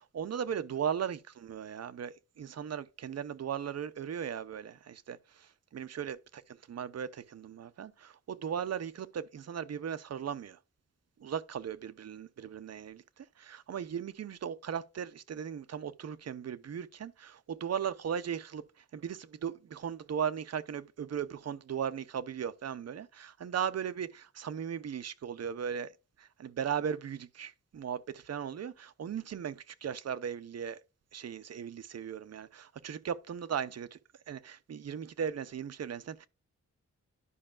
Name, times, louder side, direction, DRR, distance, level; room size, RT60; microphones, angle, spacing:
voice 1, 0.1-10.6 11.2-18.6 18.9-25.9 26.2-30.8 31.1-34.0 34.3-36.3, right 8 dB, 60° right, 0.6 m, -37 dB
11.0 x 5.5 x 2.4 m
wide cardioid pair, 170°, 29 cm